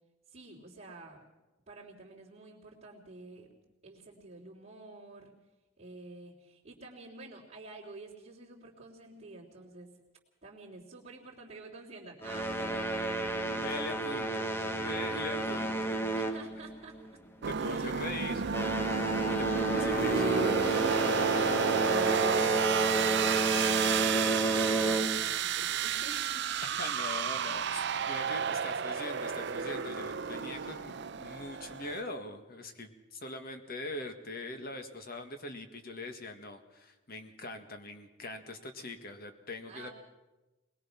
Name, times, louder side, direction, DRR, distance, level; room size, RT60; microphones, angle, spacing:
voice 1, 0.3-1.2 1.7-3.5 3.8-5.3 5.8-9.9 10.4-13.0 15.1-15.5 16.1-17.2 17.6-17.9 19.4-20.1 20.8-26.5 39.7-39.9, right 3 dB, 30° right, -8 dB, 3.3 m, -49 dB
sound 1, 12.2-17.1 17.4-17.7 18.3-25.4, right 2 dB, 10° left, 1.1 m, -31 dB
voice 2, 13.4-16.0 17.5-18.4 19.3-20.2 26.6-39.9, left 2 dB, 45° left, 7 dB, 1.8 m, -42 dB
sound 2, 17.4-32.0, right 6 dB, 55° right, 0.6 m, -31 dB
22.0 x 21.0 x 5.9 m, 1.1 s
head